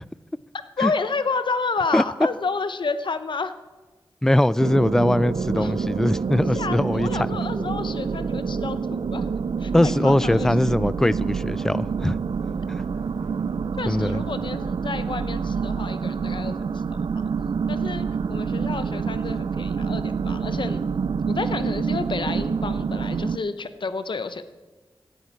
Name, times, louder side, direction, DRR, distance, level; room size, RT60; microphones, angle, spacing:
voice 1, 0.5-3.5 5.6-5.7 6.6-9.3 9.6-10.5 13.8-16.8 17.1-17.2 17.7-20.8 21.3-24.4, left 4 dB, 65° left, 11 dB, 0.7 m, -30 dB
voice 2, 4.2-7.3 9.7-12.2 12.7-12.8 13.9-14.2, left 1 dB, 5° left, 18 dB, 0.3 m, -21 dB
sound 1, 4.6-23.4, right 5 dB, 65° right, 0.4 m, -27 dB
13.0 x 11.0 x 4.6 m, 1.3 s
cardioid pair, 50°, 9 cm